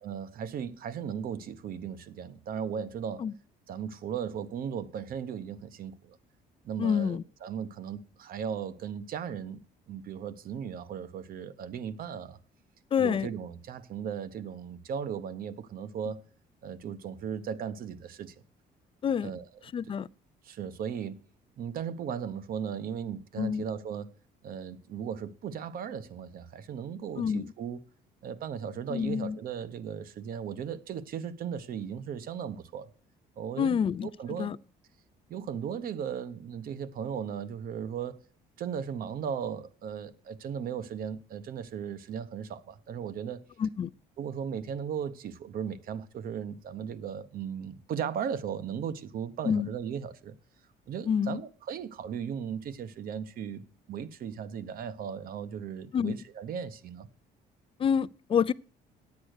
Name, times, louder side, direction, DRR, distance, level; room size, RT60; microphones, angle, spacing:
voice 1, 0.0-3.3 3.7-6.2 6.6-9.6 9.9-12.4 13.0-16.3 16.6-18.3 19.2-19.5 19.9-20.0 20.4-21.2 21.6-24.1 24.4-27.8 28.2-32.9 33.4-34.5 35.3-38.2 38.6-43.5 44.2-50.3 50.9-57.1, right 7 dB, 60° right, 1.0 m, -37 dB
voice 2, 6.8-7.2 12.9-13.3 19.0-19.3 19.7-20.1 23.4-23.6 27.2-27.5 28.9-29.4 33.6-34.1 34.4-34.6 43.6-43.9 49.4-49.7 51.1-51.4 55.9-56.1 57.8-58.5, left 7 dB, 30° left, 0.4 m, -27 dB
10.0 x 8.5 x 6.5 m
cardioid pair, 110°, 17 cm